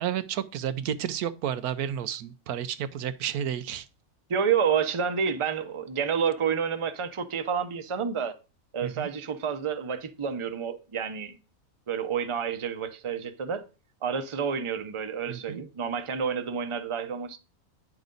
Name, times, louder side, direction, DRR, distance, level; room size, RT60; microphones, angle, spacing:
voice 1, 0.0-3.9 8.8-9.1 15.3-15.6, right 9 dB, 90° right, 1.2 m, -31 dB
voice 2, 4.3-8.3 8.7-11.4 11.9-13.6 14.0-17.4, right 7 dB, 30° right, 0.6 m, -29 dB
9.5 x 6.0 x 3.9 m
omnidirectional pair, 1.5 m